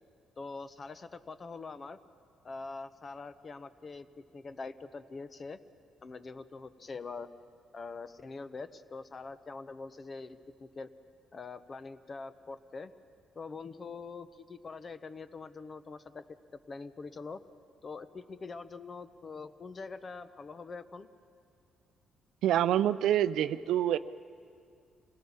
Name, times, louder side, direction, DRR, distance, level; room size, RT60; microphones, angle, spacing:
voice 1, 0.4-2.0 2.4-5.6 6.0-7.3 7.7-10.9 11.3-12.9 13.3-16.4 16.7-17.4 17.8-21.1, left 4 dB, 40° left, 12 dB, 0.9 m, -44 dB
voice 2, 22.4-24.0, right 11 dB, 80° right, 15 dB, 0.5 m, -26 dB
26.0 x 17.5 x 7.3 m, 2.3 s
cardioid pair, 90°, 0 cm